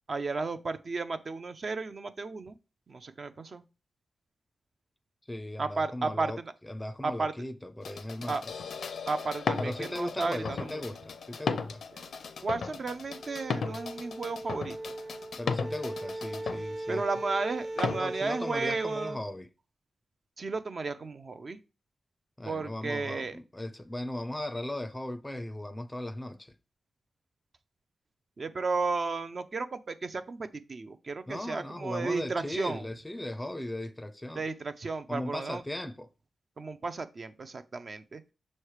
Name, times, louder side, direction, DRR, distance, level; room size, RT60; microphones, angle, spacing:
voice 1, 0.1-2.5 2.9-3.6 5.6-6.3 7.0-7.3 8.3-8.4 9.1-10.8 12.4-14.8 16.9-19.3 20.4-21.6 22.4-23.4 28.4-32.8 34.4-35.6 36.6-38.2, right 3 dB, 45° right, 0.5 m, -33 dB
voice 2, 5.3-6.4 6.7-8.5 9.6-11.8 15.4-17.1 17.9-19.5 22.4-26.5 31.3-34.5 35.1-36.1, left 1 dB, 10° left, 0.5 m, -37 dB
sound 1, 7.8-16.6 17.8-18.0, left 5 dB, 80° left, 0.5 m, -36 dB
sound 2, 13.1-19.2, right 1 dB, 60° right, 1.1 m, -39 dB
6.4 x 3.2 x 4.7 m
wide cardioid pair, 110°, 0 cm